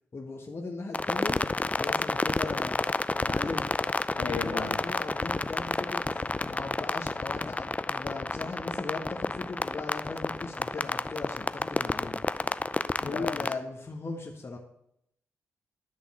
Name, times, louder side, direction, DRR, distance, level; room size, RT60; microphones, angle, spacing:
voice 1, 0.1-1.5 1.7-2.8 3.2-3.7 4.2-12.2 13.0-14.6, left 3 dB, 40° left, 1 dB, 1.3 m, -38 dB
sound 1, 0.9-13.5, left 2 dB, 20° left, 0.5 m, -30 dB
voice 2, 4.2-4.8 13.0-13.4, left 5 dB, 90° left, -1 dB, 1.6 m, -35 dB
10.5 x 3.6 x 7.3 m, 0.77 s
supercardioid pair, 45°, 6 cm